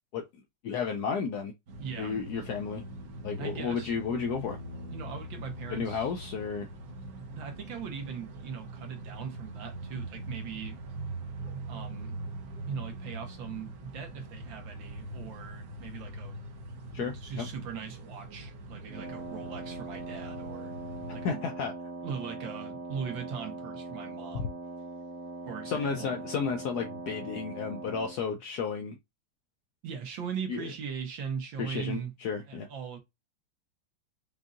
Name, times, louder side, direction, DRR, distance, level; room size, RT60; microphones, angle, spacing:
voice 1, 0.6-1.5 2.0-2.8 3.2-4.6 5.7-6.7 16.9-17.5 21.2-21.7 24.3-24.4 25.7-29.0 30.5-30.6 31.6-32.7, left 6 dB, 70° left, 0.9 m, -32 dB
sound 1, 1.7-21.3, right 1 dB, 55° right, 1.3 m, -42 dB
voice 2, 1.8-2.2 3.4-4.0 4.9-6.1 7.3-10.8 11.7-12.2 12.7-16.4 17.0-20.7 21.1-21.4 22.0-24.5 25.5-26.2 29.8-32.1 32.5-33.0, right 7 dB, 70° right, 1.9 m, -40 dB
Wind instrument woodwind instrument, 18.9-28.2, right 2 dB, 5° left, 0.8 m, -41 dB
5.3 x 2.7 x 2.4 m
omnidirectional pair, 2.2 m